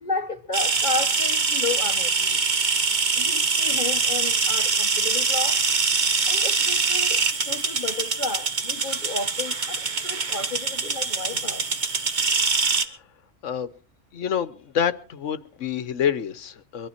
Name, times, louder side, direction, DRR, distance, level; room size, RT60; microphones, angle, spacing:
voice 1, 0.0-2.4 3.1-5.6 6.3-11.7, left 3 dB, 40° left, 1.1 m, -32 dB
sound 1, 0.5-12.8, right 4 dB, 40° right, 1.2 m, -24 dB
voice 2, 14.1-16.9, left 8 dB, 75° left, 1.3 m, -27 dB
23.5 x 12.5 x 4.3 m
omnidirectional pair, 1.3 m